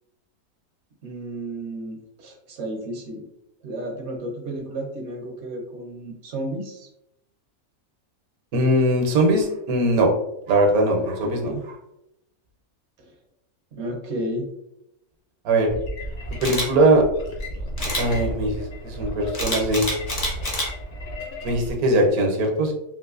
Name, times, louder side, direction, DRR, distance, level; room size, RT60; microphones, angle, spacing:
voice 1, 1.0-3.3 3.6-6.9 11.0-11.6 13.0-13.1 13.7-14.5, right 1 dB, 60° right, 3 dB, 0.8 m, -33 dB
voice 2, 8.5-10.1 10.5-11.5 15.4-15.7 16.3-17.0 18.0-19.9 21.4-22.7, right 1 dB, 80° right, 3 dB, 1.2 m, -20 dB
sound 1, 15.7-21.7, equal, 60° left, 1.0 m, -33 dB
Camera, 16.4-16.7 17.8-18.0 19.3-20.7 21.2-21.4, left 1 dB, 40° left, 0.6 m, -27 dB
3.8 x 2.5 x 2.4 m, 0.83 s
omnidirectional pair, 1.5 m